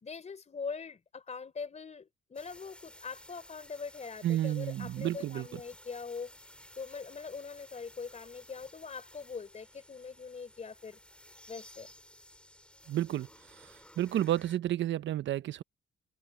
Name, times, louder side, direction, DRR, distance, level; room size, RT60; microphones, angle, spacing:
voice 1, 0.0-6.4 6.8-11.0 11.5-11.9, left 5 dB, 35° left, 3.6 m, -42 dB
sound 1, 2.3-14.6, left 1 dB, 5° left, 6.5 m, -55 dB
voice 2, 4.2-5.5 12.9-13.3 14.0-15.6, right 13 dB, 70° right, 0.8 m, -31 dB
cardioid pair, 90°, 20 cm